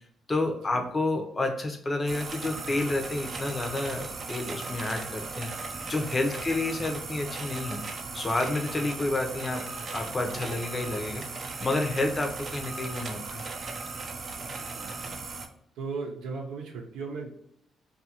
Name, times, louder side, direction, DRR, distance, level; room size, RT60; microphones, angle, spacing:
voice 1, 0.3-5.5 5.8-7.8 8.1-11.2 11.6-13.4, left 2 dB, 25° left, 4 dB, 0.6 m, -30 dB
sound 1, 2.1-15.5, right 3 dB, 45° right, 0.5 m, -37 dB
voice 2, 14.4-15.2 15.7-17.3, right 4 dB, 85° right, 1 dB, 0.6 m, -38 dB
2.7 x 2.4 x 2.8 m, 0.74 s
cardioid pair, 90°, 0 cm